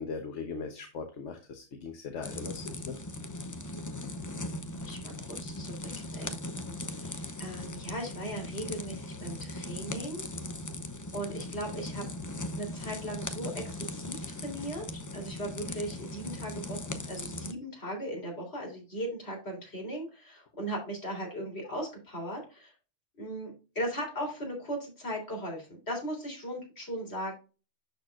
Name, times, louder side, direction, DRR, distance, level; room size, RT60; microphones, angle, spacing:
voice 1, 0.0-3.0, left 5 dB, 80° left, 5 dB, 1.3 m, -39 dB
sound 1, 2.2-17.5, left 1 dB, 20° left, 0.6 m, -39 dB
voice 2, 3.8-4.3 4.7-10.3 11.1-12.1 12.5-22.7 23.2-27.3, right 1 dB, 65° left, 0 dB, 3.8 m, -38 dB
12.0 x 4.4 x 2.5 m, 0.32 s
omnidirectional pair, 1.2 m